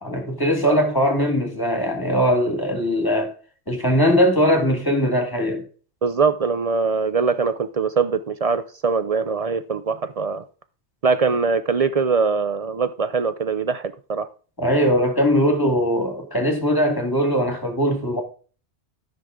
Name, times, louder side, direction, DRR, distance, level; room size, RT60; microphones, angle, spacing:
voice 1, 0.0-3.3 3.7-5.6 14.6-18.2, equal, 20° left, 1.8 m, -20 dB
voice 2, 6.0-10.4 11.0-14.3, right 5 dB, 50° right, 0.4 m, -22 dB
13.0 x 5.7 x 3.7 m
omnidirectional pair, 1.2 m